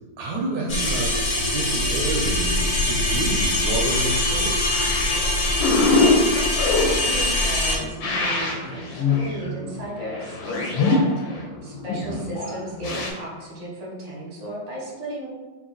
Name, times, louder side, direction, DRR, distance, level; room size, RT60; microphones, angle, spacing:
voice 1, 0.2-4.8, right 2 dB, 75° right, -1 dB, 1.1 m, -29 dB
sound 1, 0.7-7.8, left 1 dB, 60° left, 1.3 m, -23 dB
sound 2, 4.7-13.1, left 3 dB, 80° left, 1.4 m, -24 dB
voice 2, 5.8-15.3, right 1 dB, 30° right, -5 dB, 0.7 m, -34 dB
3.1 x 2.6 x 3.8 m, 1.3 s
omnidirectional pair, 2.1 m